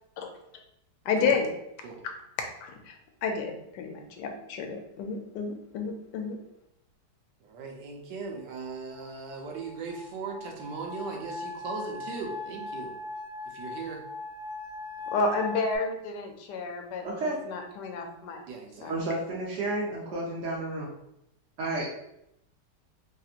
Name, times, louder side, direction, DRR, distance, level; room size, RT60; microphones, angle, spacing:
voice 1, 1.0-1.5 2.6-3.0 3.2-6.4 15.1-18.4 18.8-18.9, left 4 dB, 80° left, 4 dB, 1.2 m, -31 dB
voice 2, 7.4-13.0 13.4-14.0 18.5-19.1, right 4 dB, 85° right, 1 dB, 1.3 m, -38 dB
sound 1, 8.6-15.8, left 2 dB, 60° left, 0.8 m, -40 dB
voice 3, 17.0-17.4 18.9-20.9 21.6-21.9, right 2 dB, 65° right, -5 dB, 0.7 m, -31 dB
3.4 x 2.8 x 2.4 m, 0.80 s
omnidirectional pair, 1.9 m